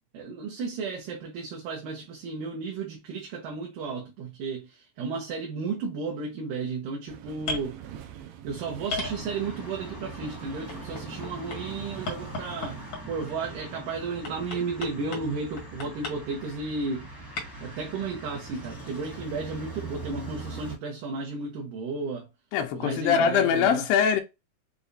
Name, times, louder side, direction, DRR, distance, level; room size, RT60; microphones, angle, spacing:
voice 1, 0.1-7.8 8.4-17.1 17.6-22.3 22.7-23.9, right 4 dB, 70° right, 2.4 m, -33 dB
sound 1, 7.1-12.9, right 10 dB, 85° right, 2.5 m, -45 dB
sound 2, 7.4-7.7 8.9-9.7 10.7-11.6 12.1-13.2 14.2-15.3 15.6-16.2 17.4-17.5, left 3 dB, 60° left, 1.3 m, -34 dB
sound 3, 9.0-20.8, right 2 dB, 15° left, 0.8 m, -42 dB
voice 2, 22.5-24.2, left 7 dB, 85° left, 2.4 m, -22 dB
6.9 x 2.4 x 2.6 m
omnidirectional pair, 4.2 m